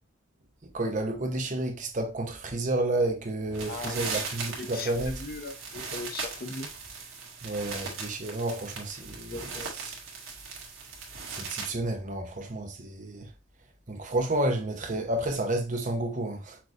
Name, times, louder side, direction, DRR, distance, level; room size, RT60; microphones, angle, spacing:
voice 1, 0.6-5.1 7.4-9.5 9.9-10.0 11.3-13.3 13.9-16.6, right 1 dB, 40° right, 0.9 m, -30 dB
sound 1, 3.5-11.7, right 4 dB, 80° right, 1.6 m, -39 dB
voice 2, 3.6-4.3 4.6-6.7 9.2-9.8, left 3 dB, 45° left, 0.9 m, -39 dB
5.9 x 3.1 x 2.5 m
head